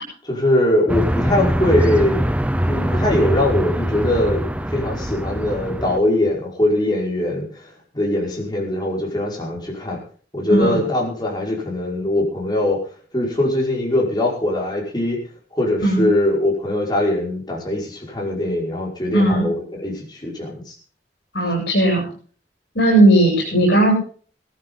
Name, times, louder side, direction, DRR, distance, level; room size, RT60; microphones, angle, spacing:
voice 1, 0.2-2.2 2.7-4.4 4.7-7.7 7.9-10.0 10.3-12.8 13.1-15.2 15.5-20.7, left 1 dB, 25° left, -2 dB, 5.5 m, -21 dB
sound 1, 0.9-6.0, equal, 10° right, 0.7 m, -22 dB
voice 2, 10.5-10.8 15.8-16.0 19.1-19.5 21.3-22.0 22.7-23.9, right 1 dB, 75° left, -4 dB, 7.6 m, -16 dB
18.0 x 14.0 x 4.0 m, 0.43 s
head